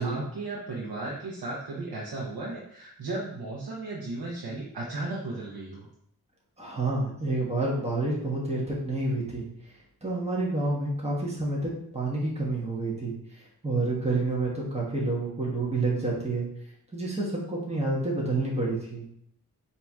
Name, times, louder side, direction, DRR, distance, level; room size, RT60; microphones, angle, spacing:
voice 1, 0.0-5.9, right 2 dB, 80° right, -5 dB, 0.9 m, -35 dB
voice 2, 6.6-9.7 10.0-16.5 16.9-19.0, right 2 dB, 15° right, -5 dB, 1.2 m, -29 dB
4.5 x 2.9 x 3.5 m, 0.70 s
wide cardioid pair, 60°, 37 cm